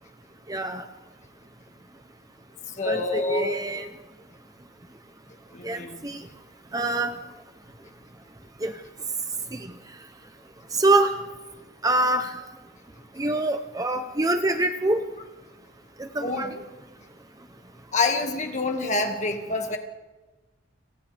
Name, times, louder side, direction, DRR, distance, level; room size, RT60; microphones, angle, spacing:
voice 1, 0.5-0.8 2.8-3.9 5.6-6.2 6.7-7.2 8.6-8.7 9.5-9.7 10.7-11.2 11.8-12.4 13.2-15.0 16.0-16.5, right 2 dB, 15° right, 8 dB, 0.6 m, -25 dB
voice 2, 2.8-3.5 5.5-6.0 16.2-16.5 17.9-19.8, left 3 dB, 35° left, 4 dB, 1.9 m, -27 dB
29.5 x 27.0 x 3.4 m, 1.2 s
head